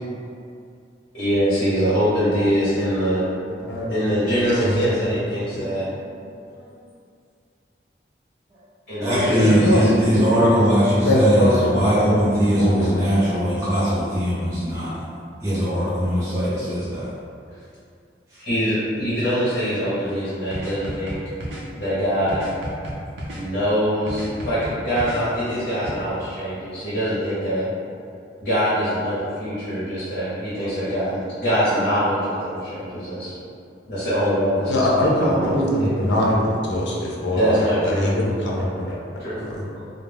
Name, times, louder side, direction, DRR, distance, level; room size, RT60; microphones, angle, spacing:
voice 1, 1.1-3.3 3.9-5.8 8.9-9.9 18.4-21.2 21.8-22.4 23.4-27.6 28.4-33.3 33.9-36.0 37.3-38.1 39.2-39.4, equal, 60° left, -12 dB, 0.8 m, -23 dB
voice 2, 4.4-5.1 5.5-5.6 9.1-9.9 10.1-10.6 10.8-11.7 12.0-13.0 34.7-37.5 37.8-39.0 39.4-39.6, left 1 dB, 85° left, -3 dB, 0.5 m, -23 dB
voice 3, 9.0-14.9 15.4-17.1, equal, 15° right, -11 dB, 0.4 m, -20 dB
sound 1, 20.5-21.6 22.3-23.4 24.1-25.2 25.8-25.9, equal, 80° right, 0.6 m, -32 dB
2.4 x 2.0 x 3.3 m, 2.4 s
head